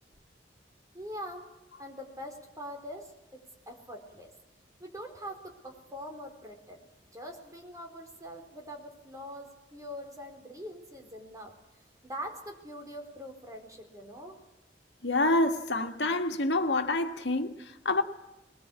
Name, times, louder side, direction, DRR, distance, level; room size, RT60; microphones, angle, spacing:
voice 1, 0.9-1.5 1.8-4.3 4.8-6.9 7.1-11.5 12.0-14.4, equal, 20° right, 4.3 m, -43 dB
voice 2, 15.0-18.0, left 2 dB, 75° left, 1.9 m, -27 dB
21.0 x 21.0 x 8.4 m
head